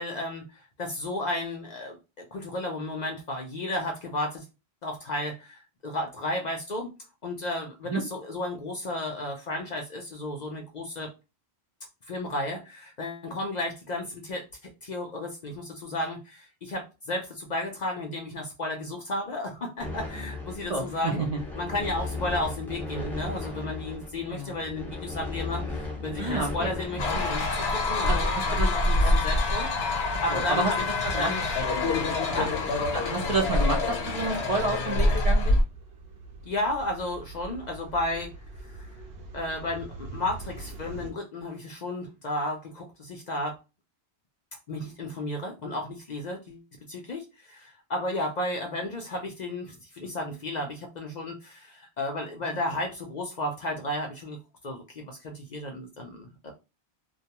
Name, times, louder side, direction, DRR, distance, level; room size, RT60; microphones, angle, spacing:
voice 1, 0.0-4.5 4.8-6.9 7.2-11.1 12.1-14.5 14.8-21.2 21.6-30.9 31.2-31.6 32.3-32.5 36.4-38.3 38.6-39.0 39.3-43.6 44.7-46.6 46.9-56.6, left 1 dB, 55° left, 0.6 m, -33 dB
sound 1, 19.8-28.3, left 2 dB, ahead, 0.4 m, -36 dB
voice 2, 20.7-21.4 24.3-24.5 26.2-27.2 28.1-28.2 28.5-28.7 29.0-29.1 30.3-30.7 31.1-31.3 31.8-31.9 32.9-35.6, right 2 dB, 45° right, 0.6 m, -29 dB
sound 2, 27.0-35.6, left 2 dB, 80° left, 0.9 m, -26 dB
sound 3, 33.9-41.1, right 2 dB, 70° right, 0.8 m, -45 dB
2.2 x 2.2 x 2.8 m
omnidirectional pair, 1.1 m